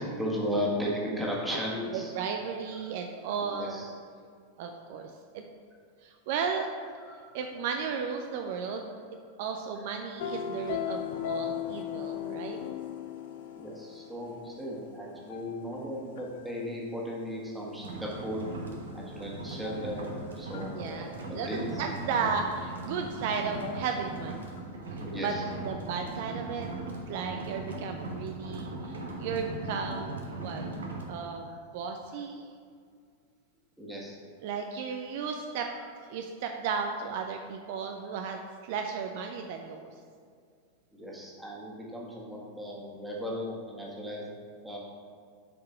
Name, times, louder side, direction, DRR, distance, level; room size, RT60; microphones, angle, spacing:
voice 1, 0.0-2.1 2.7-2.8 3.4-3.9 7.0-7.4 13.6-18.4 18.9-20.1 20.3-21.8 22.8-23.2 25.0-25.4 28.7-29.0 31.5-31.6 33.8-34.2 40.9-44.2 44.6-44.8, equal, 5° right, -4 dB, 1.6 m, -36 dB
voice 2, 1.9-3.8 4.6-5.4 6.0-6.7 7.3-8.9 9.4-12.6 20.7-24.5 24.9-25.3 25.6-26.7 27.1-30.6 31.1-32.5 34.4-35.7 36.0-39.9, right 6 dB, 50° right, 4 dB, 0.4 m, -34 dB
sound 1, 10.2-16.4 19.6-20.2 20.5-20.8 23.6-24.2 24.6-24.7, left 9 dB, 55° left, 0.4 m, -38 dB
sound 2, 17.8-31.1, right 2 dB, 65° right, 0.9 m, -39 dB
7.2 x 4.7 x 4.4 m, 2.1 s
figure-of-eight pair, 90°, 0 cm